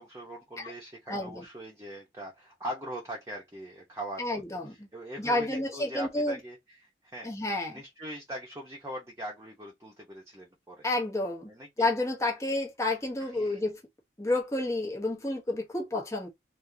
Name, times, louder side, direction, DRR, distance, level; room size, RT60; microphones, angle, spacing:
voice 1, 0.0-4.2 4.9-6.6 7.0-7.3 7.7-10.9 11.5-11.9 13.3-13.6, right 1 dB, 15° right, 0.9 m, -41 dB
voice 2, 1.1-1.4 4.2-4.9 5.2-6.4 7.2-7.8 10.8-11.5 11.8-13.8 14.2-16.3, left 2 dB, 15° left, 1.0 m, -30 dB
3.6 x 2.7 x 2.7 m
head